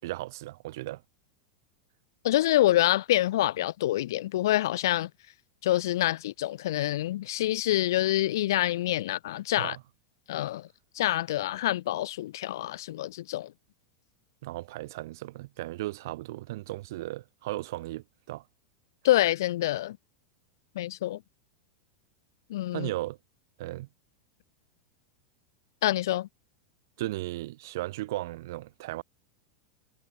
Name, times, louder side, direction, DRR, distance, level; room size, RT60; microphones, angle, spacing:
voice 1, 0.0-1.0 9.6-9.8 14.4-18.4 22.7-23.2 23.6-23.9 27.0-29.0, right 17 dB, 60° right, 0.7 m, -36 dB
voice 2, 2.2-5.1 5.6-9.8 10.3-10.7 11.0-13.5 19.0-20.0 20.8-21.2 22.5-22.9 25.8-26.3, left 14 dB, 70° left, 0.6 m, -26 dB
supercardioid pair, 170°, 2 cm